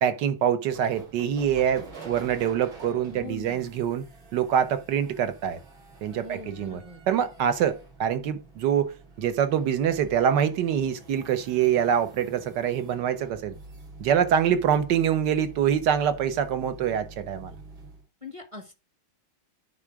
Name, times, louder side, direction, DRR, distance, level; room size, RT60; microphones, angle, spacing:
voice 1, 0.0-4.0 4.3-5.6 6.0-6.8 7.1-13.6 14.0-17.5, right 9 dB, 65° right, 1.5 m, -25 dB
sound 1, 0.7-18.1, right 3 dB, 85° right, 3.1 m, -47 dB
voice 2, 3.1-3.7 6.2-7.1 18.2-18.7, left 2 dB, 20° right, 1.0 m, -41 dB
9.7 x 3.7 x 4.7 m
omnidirectional pair, 2.2 m